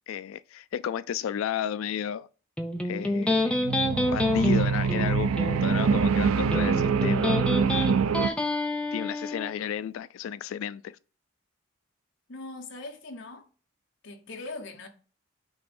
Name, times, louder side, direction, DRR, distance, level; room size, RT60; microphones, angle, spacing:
voice 1, 0.1-2.3 2.8-3.6 4.1-7.4 7.7-8.1 8.9-11.0, left 9 dB, 75° left, 0.3 m, -33 dB
Electric guitar, 2.6-9.5, left 2 dB, 5° left, 0.6 m, -28 dB
sound 1, 3.5-8.3, right 5 dB, 90° right, 0.4 m, -25 dB
voice 2, 12.3-13.5 14.0-14.9, left 2 dB, 60° left, 1.0 m, -40 dB
8.9 x 3.0 x 5.3 m
head